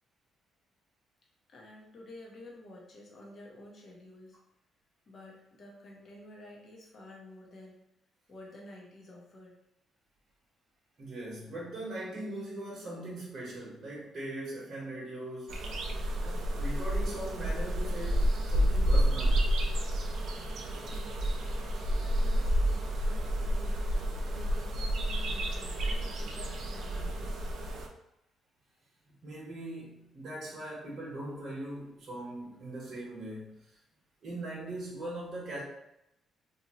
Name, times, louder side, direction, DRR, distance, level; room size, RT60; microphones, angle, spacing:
voice 1, 1.5-4.4 5.1-7.8 8.3-9.6 20.8-21.2 22.0-23.8 24.3-27.5, left 1 dB, 50° left, -2 dB, 0.9 m, -51 dB
voice 2, 11.0-15.6 16.2-19.4 29.2-33.7 34.2-35.6, right 1 dB, 50° right, -5 dB, 1.0 m, -40 dB
sound 1, 15.5-27.9, equal, 70° right, 0.4 m, -30 dB
2.7 x 2.5 x 2.9 m, 0.86 s
cardioid pair, 90°, 0 cm